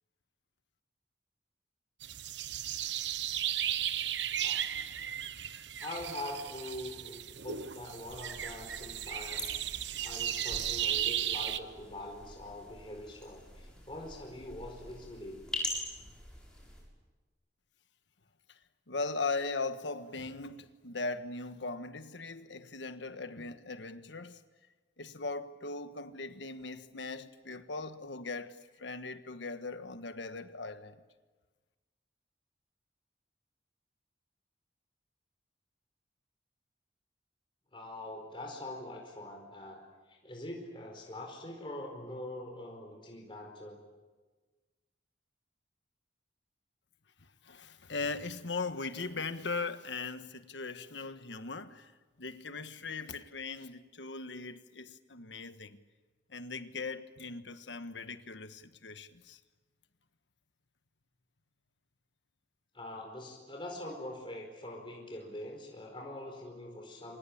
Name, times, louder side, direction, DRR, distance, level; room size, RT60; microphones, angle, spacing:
sound 1, 2.0-11.6, right 10 dB, 80° right, 1.0 m, -35 dB
voice 1, 4.4-5.2 5.8-9.5 10.0-15.4 37.7-39.8 40.1-43.8 62.7-67.2, left 1 dB, 30° left, 4.7 m, -44 dB
sound 2, 8.0-16.8, left 1 dB, 5° left, 7.4 m, -44 dB
voice 2, 18.9-24.4 25.0-31.0 47.4-51.9 52.2-55.8 56.3-59.4, left 3 dB, 90° left, 1.5 m, -39 dB
27.0 x 24.5 x 8.7 m
head